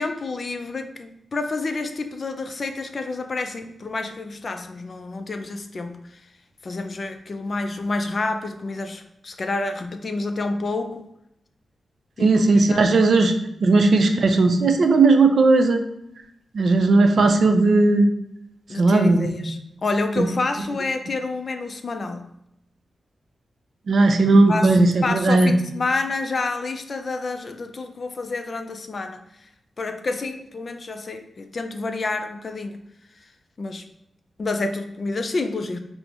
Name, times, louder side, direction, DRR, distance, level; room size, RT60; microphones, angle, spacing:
voice 1, 0.0-6.0 6.6-11.1 12.2-12.8 18.7-22.3 24.2-29.2 29.8-32.8 33.6-33.9 34.4-35.8, left 3 dB, 45° left, 7 dB, 0.4 m, -28 dB
voice 2, 12.2-13.3 13.6-15.8 16.5-18.1 18.8-19.3 20.2-20.3 23.9-25.5, right 3 dB, 65° right, 6 dB, 0.4 m, -17 dB
5.0 x 2.0 x 2.9 m, 0.81 s
wide cardioid pair, 105°, 0 cm